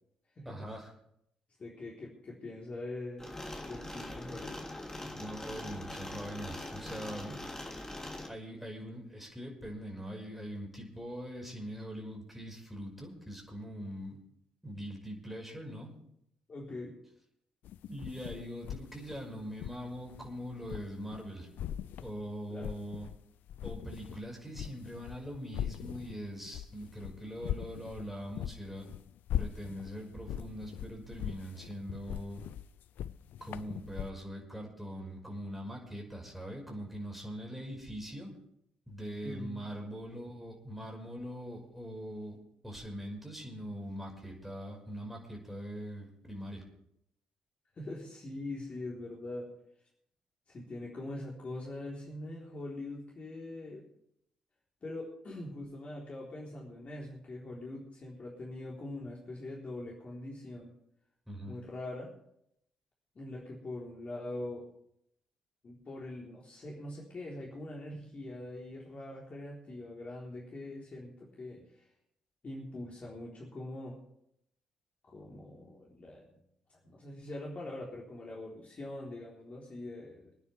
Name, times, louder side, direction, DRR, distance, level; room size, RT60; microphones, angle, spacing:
voice 1, 0.4-0.9 5.0-7.4 8.3-14.2 14.6-15.9 17.9-21.5 22.0-23.1 23.6-28.9 29.4-32.5 33.4-38.3 38.9-42.4 42.6-46.6 61.3-61.6, equal, 5° right, 0 dB, 5.3 m, -42 dB
voice 2, 1.6-3.3 3.7-4.6 7.3-7.4 16.5-16.9 22.5-22.7 39.2-39.6 47.7-49.5 50.5-53.8 54.8-60.7 61.5-62.1 63.2-64.6 65.6-71.9 72.4-74.0 75.0-76.4 76.7-80.3, left 2 dB, 40° left, -3 dB, 3.8 m, -43 dB
sound 1, 3.2-8.3, left 1 dB, 15° left, 3.2 m, -42 dB
sound 2, 17.6-21.3 21.6-23.2 23.5-34.1, left 10 dB, 60° left, 0.4 m, -40 dB
26.0 x 9.8 x 3.4 m, 0.73 s
figure-of-eight pair, 40°, 4 cm